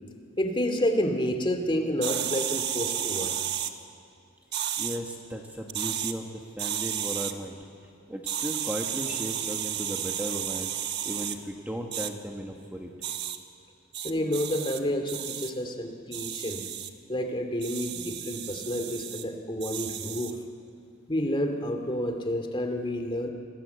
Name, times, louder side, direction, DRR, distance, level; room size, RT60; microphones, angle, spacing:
voice 1, 0.4-3.4 14.0-16.6 17.1-20.3 21.1-23.3, left 1 dB, 25° left, 4 dB, 2.4 m, -29 dB
sound 1, 2.0-3.7 4.5-5.0 5.7-6.1 6.6-7.3 8.3-11.4 11.9-12.1 13.0-13.4 13.9-14.8 15.1-15.5 16.1-16.9 17.6-19.2 19.6-20.4, right 10 dB, 55° right, 1.3 m, -32 dB
voice 2, 4.8-7.6 8.1-10.8 11.0-12.9, equal, 10° right, 1 dB, 1.5 m, -36 dB
28.5 x 20.0 x 8.1 m, 2.4 s
head